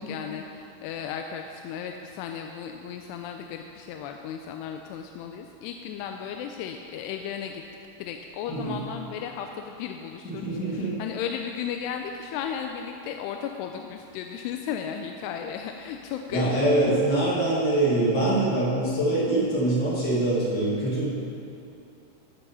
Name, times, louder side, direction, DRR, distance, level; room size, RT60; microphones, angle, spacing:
voice 1, 0.0-7.6 8.0-16.5, left 8 dB, 85° left, 4 dB, 2.6 m, -35 dB
voice 2, 8.5-8.8 10.2-11.0 16.3-21.1, right 1 dB, 60° left, -7 dB, 1.0 m, -24 dB
14.0 x 6.8 x 5.6 m, 2.7 s
omnidirectional pair, 4.7 m